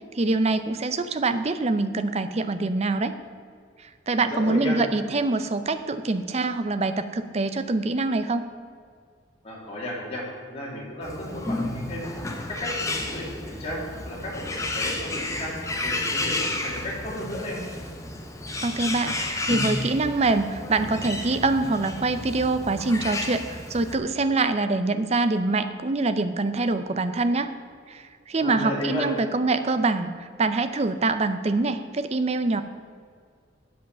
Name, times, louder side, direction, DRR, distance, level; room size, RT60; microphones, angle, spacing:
voice 1, 0.1-3.1 3.8-8.4 18.6-27.5 27.9-32.6, right 3 dB, 35° right, 11 dB, 0.5 m, -25 dB
voice 2, 4.2-4.8 9.4-10.2 10.5-12.0 12.5-14.4 14.7-15.5 15.8-17.6 28.4-29.1, left 1 dB, 35° left, -4 dB, 2.7 m, -33 dB
Bird, 11.0-24.0, left 2 dB, 15° left, 0.9 m, -32 dB
8.0 x 7.7 x 6.6 m, 2.1 s
head